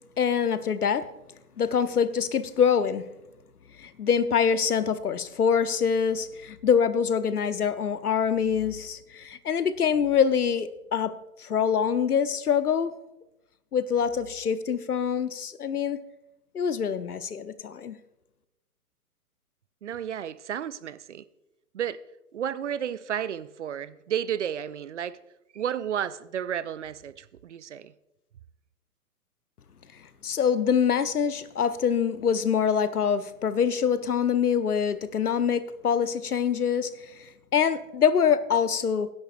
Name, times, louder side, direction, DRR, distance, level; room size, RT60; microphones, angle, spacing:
voice 1, 0.2-1.0 1.6-3.0 3.8-11.1 11.4-12.9 13.7-16.0 16.5-18.0 30.2-39.1, left 7 dB, 75° left, 0.9 m, -25 dB
voice 2, 19.8-21.2 21.7-22.0 22.3-25.2 25.5-27.9, right 9 dB, 50° right, 0.5 m, -32 dB
21.5 x 10.5 x 2.5 m
figure-of-eight pair, 130°, 45 cm